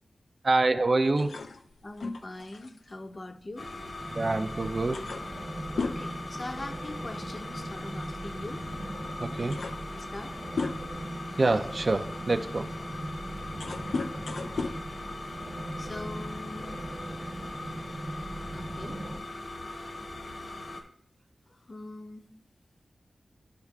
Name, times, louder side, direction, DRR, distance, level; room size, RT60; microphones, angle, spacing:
voice 1, 0.4-1.4 4.1-5.0 9.2-9.6 11.4-12.7, right 2 dB, 50° right, 9 dB, 0.5 m, -26 dB
sound 1, 1.2-4.2 4.5-4.6 4.9-7.1 7.4-7.6 8.6-8.7 9.2-11.1 11.7-15.8, left 4 dB, 90° left, 0.4 m, -37 dB
voice 2, 1.8-3.7 5.7-8.7 9.9-10.3 14.4-14.8 15.8-16.8 18.5-19.0 20.5-20.6 21.5-22.2, left 2 dB, 40° left, 8 dB, 0.6 m, -42 dB
sound 2, 3.6-20.8, left 2 dB, 70° left, 1.1 m, -40 dB
sound 3, 4.0-19.2, right 1 dB, 65° right, 0.9 m, -40 dB
11.5 x 4.7 x 2.3 m, 0.63 s
wide cardioid pair, 70°, 0 cm